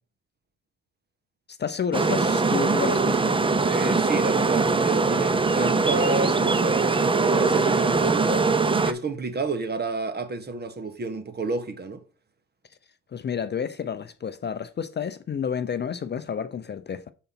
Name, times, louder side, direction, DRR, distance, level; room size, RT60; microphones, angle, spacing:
voice 1, 1.5-3.4 13.1-17.1, left 7 dB, 35° left, 0.6 m, -30 dB
sound 1, 1.9-8.9, right 4 dB, 15° right, 0.6 m, -22 dB
voice 2, 3.6-8.5 8.8-12.0, right 3 dB, 35° right, 1.3 m, -30 dB
6.7 x 4.0 x 5.8 m
cardioid pair, 90°, 30 cm